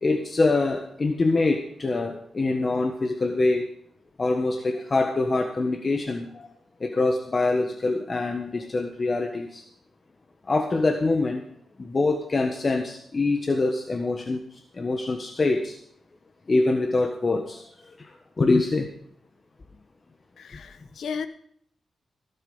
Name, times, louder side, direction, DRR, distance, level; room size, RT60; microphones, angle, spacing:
voice 1, 0.0-3.7 4.2-6.5 6.8-9.6 10.5-11.4 11.8-15.8 16.5-18.9, left 3 dB, 45° left, 5 dB, 1.4 m, -25 dB
voice 2, 20.4-21.3, left 6 dB, 80° left, 11 dB, 1.1 m, -34 dB
17.0 x 8.3 x 5.5 m, 0.66 s
cardioid pair, 55°, 0 cm